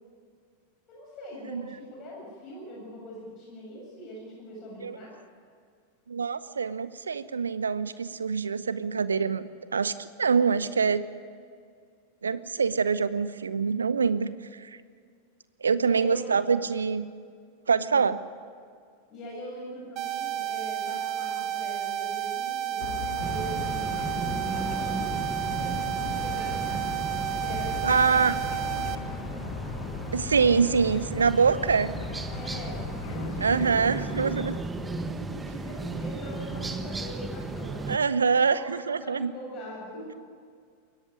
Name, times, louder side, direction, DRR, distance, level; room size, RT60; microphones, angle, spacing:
voice 1, 0.9-5.2 15.8-16.2 16.5-16.6 17.8-18.1 19.1-25.1 25.6-26.9 27.4-29.1 32.3-37.8 38.4-38.6 39.0-40.2, equal, 35° left, -3 dB, 7.8 m, -42 dB
voice 2, 6.1-11.0 12.2-14.8 15.6-17.1 17.7-18.2 27.8-28.3 30.1-31.9 33.4-34.6 37.9-39.3, right 5 dB, 75° right, 15 dB, 0.8 m, -25 dB
sound 1, 20.0-29.0, right 11 dB, 40° right, 1.3 m, -31 dB
sound 2, 22.8-34.6, left 9 dB, 50° left, 1.6 m, -39 dB
sound 3, 23.2-38.0, right 2 dB, 10° right, 1.3 m, -35 dB
22.5 x 17.5 x 9.5 m, 2.2 s
figure-of-eight pair, 90°, 0 cm